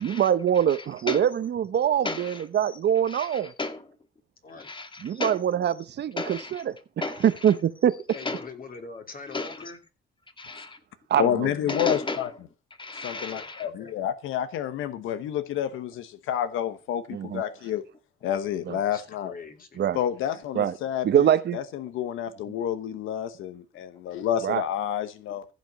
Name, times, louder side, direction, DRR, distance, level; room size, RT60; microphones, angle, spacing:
voice 1, 0.0-3.5 5.0-7.9 11.1-11.5 17.1-17.4 18.7-18.8 19.8-20.0 20.5-20.7 21.0-21.6 24.4-24.6, right 9 dB, 60° right, 0.9 m, -24 dB
voice 2, 2.0-2.4 3.1-3.8 4.6-5.4 6.2-6.6 7.0-7.3 8.2-8.4 9.3-9.6 10.4-10.8 11.2-11.3 11.7-12.2 12.8-13.6, left 3 dB, 25° left, 2.2 m, -33 dB
voice 3, 8.1-9.8 13.1-13.9 18.8-19.8, left 4 dB, 45° left, 3.2 m, -43 dB
voice 4, 11.2-12.3 12.9-17.8 18.2-19.3 19.9-25.4, left 10 dB, 90° left, 1.0 m, -29 dB
15.0 x 5.2 x 6.4 m
cardioid pair, 90°, 20 cm